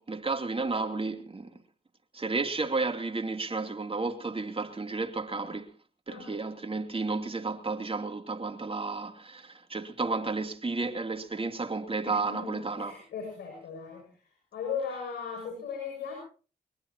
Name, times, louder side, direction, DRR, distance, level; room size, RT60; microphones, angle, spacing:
voice 1, 0.0-1.6 2.1-5.7 6.1-13.0, right 3 dB, 35° right, 2.9 m, -32 dB
voice 2, 12.0-14.0 14.5-16.1, left 6 dB, 85° left, 6.7 m, -37 dB
22.0 x 22.0 x 2.9 m
supercardioid pair, 45°, 17 cm